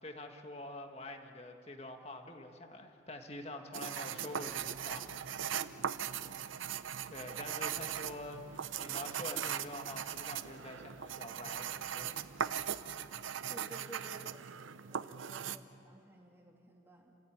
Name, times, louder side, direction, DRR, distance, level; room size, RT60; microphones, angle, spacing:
voice 1, 0.0-5.1 7.1-12.1 12.4-12.6 15.4-15.7, left 1 dB, 30° left, 4 dB, 1.7 m, -46 dB
sound 1, 3.7-15.6, right 9 dB, 90° right, 0.7 m, -39 dB
sound 2, 4.4-13.0, right 2 dB, 65° right, 1.6 m, -61 dB
voice 2, 5.8-6.4 13.5-14.4 14.9-17.2, right 1 dB, 10° right, -1 dB, 3.0 m, -55 dB
30.0 x 15.5 x 8.7 m, 2.6 s
head